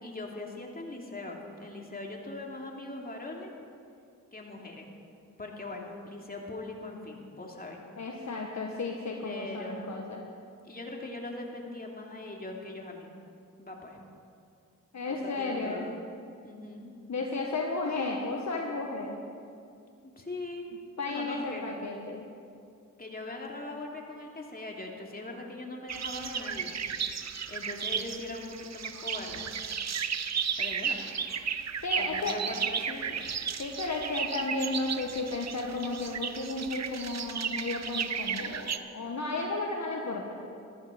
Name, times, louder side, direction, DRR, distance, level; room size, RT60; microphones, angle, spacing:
voice 1, 0.0-3.5 4.3-4.9 5.4-7.8 9.2-10.0 10.6-13.1 13.6-14.0 15.1-16.0 16.4-16.9 20.2-20.7 21.1-21.7 23.0-26.7 27.0-27.2 27.5-29.5 30.6-31.0 31.9-33.3, left 2 dB, 25° left, 0 dB, 2.8 m, -41 dB
voice 2, 8.0-10.2 14.9-15.9 17.1-19.2 21.0-22.3 31.8-32.4 33.6-40.3, left 3 dB, 50° left, 0 dB, 1.5 m, -33 dB
sound 1, 25.9-38.8, right 7 dB, 50° right, 0.8 m, -34 dB
15.0 x 13.0 x 5.2 m, 2.4 s
cardioid pair, 50°, 35 cm